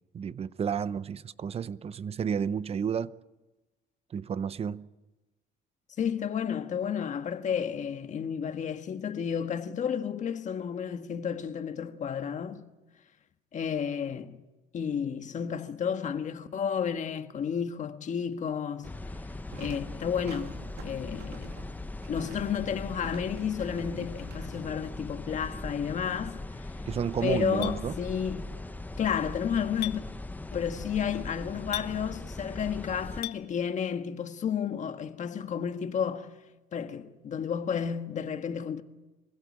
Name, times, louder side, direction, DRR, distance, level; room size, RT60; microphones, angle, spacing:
voice 1, 0.1-3.1 4.1-4.9 26.9-28.0, right 7 dB, 35° right, 0.8 m, -31 dB
voice 2, 6.0-12.6 13.5-14.4 14.7-18.9 19.5-20.6 20.8-21.6 22.1-26.7 27.2-28.5 29.0-30.0 30.5-36.3 36.7-38.8, left 7 dB, 45° left, 1.5 m, -32 dB
sound 1, 18.8-33.2, left 2 dB, 10° left, 1.0 m, -40 dB
sound 2, 19.4-25.1, right 6 dB, 80° right, 2.4 m, -49 dB
Chink clink, 27.6-27.8 29.8-30.0 31.7-31.9 33.2-33.4, left 14 dB, 75° left, 1.0 m, -35 dB
24.5 x 16.5 x 8.6 m
cardioid pair, 110°, 17 cm